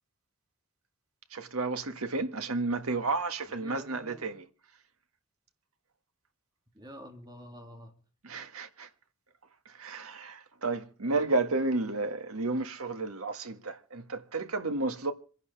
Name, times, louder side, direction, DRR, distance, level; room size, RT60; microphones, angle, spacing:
voice 1, 1.3-4.5 8.2-8.9 9.7-15.1, right 3 dB, 80° right, 1.7 m, -32 dB
voice 2, 3.6-4.4 6.7-7.9, equal, 20° right, 2.4 m, -48 dB
27.0 x 11.0 x 3.4 m
head